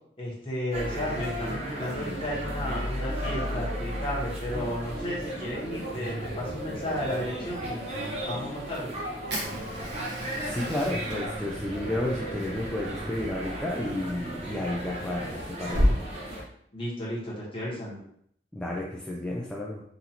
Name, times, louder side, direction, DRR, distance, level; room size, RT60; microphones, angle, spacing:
voice 1, 0.2-8.9 16.7-18.0, left 1 dB, 30° left, -5 dB, 1.2 m, -33 dB
sound 1, 0.7-16.4, equal, 35° right, 0.8 m, -35 dB
Fire, 9.3-15.9, equal, 70° right, 1.2 m, -33 dB
voice 2, 10.4-15.9 18.5-19.8, left 1 dB, 5° left, -4 dB, 0.4 m, -32 dB
4.0 x 2.6 x 2.9 m, 0.68 s
head